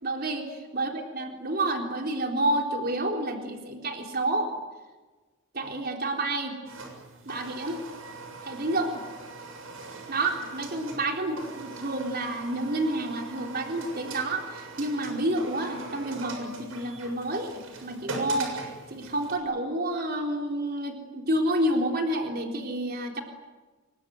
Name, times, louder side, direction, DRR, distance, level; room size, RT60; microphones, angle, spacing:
voice 1, 0.0-4.5 5.5-6.6 7.3-7.8 8.4-8.9 10.1-18.6 18.9-23.2, right 1 dB, 50° right, 2 dB, 3.8 m, -29 dB
sound 1, 6.7-19.4, right 3 dB, 80° right, 7.0 m, -41 dB
26.5 x 23.5 x 9.5 m, 1.3 s
head